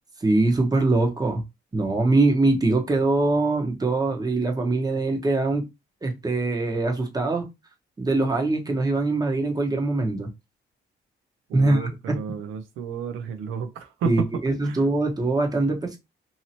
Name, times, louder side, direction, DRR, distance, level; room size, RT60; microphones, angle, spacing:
voice 1, 0.2-1.4 1.7-5.6 6.0-7.5 8.0-10.3 11.5-12.2 14.0-16.0, right 2 dB, 20° right, 1.0 m, -23 dB
voice 2, 11.5-14.8, right 6 dB, 85° right, 0.5 m, -32 dB
2.8 x 2.7 x 2.8 m
cardioid pair, 90°, 20 cm